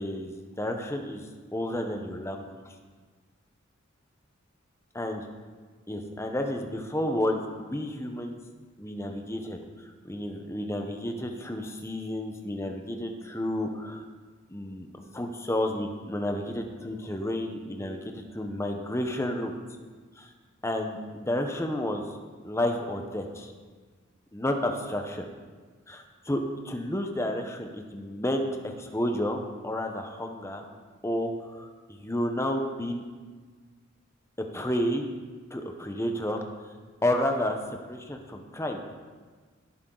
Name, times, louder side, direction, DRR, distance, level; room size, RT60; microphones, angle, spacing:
voice 1, 0.0-2.6 4.9-5.2 5.9-8.4 8.8-14.0 14.5-14.9 15.1-19.5 20.2-20.3 20.6-22.1 22.4-23.5 24.3-25.2 25.9-30.6 31.0-33.0 34.4-35.1 35.5-36.4 37.0-37.6 37.9-38.8, left 1 dB, 15° left, 4 dB, 0.9 m, -31 dB
15.5 x 8.0 x 4.0 m, 1.4 s
head